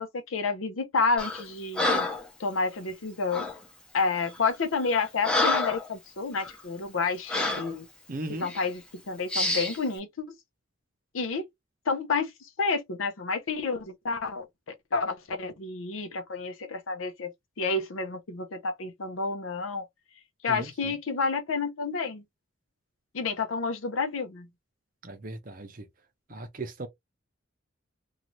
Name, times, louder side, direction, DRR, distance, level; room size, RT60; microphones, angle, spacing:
voice 1, 0.0-2.1 2.4-3.5 3.9-7.8 8.4-10.3 11.1-11.5 11.9-12.3 12.6-17.3 17.6-19.9 20.4-22.2 23.1-24.5, left 4 dB, 80° left, 0.6 m, -30 dB
Breathing, 1.2-1.4 1.8-2.3 3.3-3.6 4.3-4.4 4.8-5.9 6.3-6.5 7.3-7.7 8.4-8.6 9.3-9.8, left 2 dB, 5° left, 0.5 m, -28 dB
voice 2, 8.1-8.5 20.5-20.9 25.0-25.9 26.3-26.9, right 2 dB, 40° right, 0.6 m, -37 dB
2.6 x 2.3 x 3.0 m
head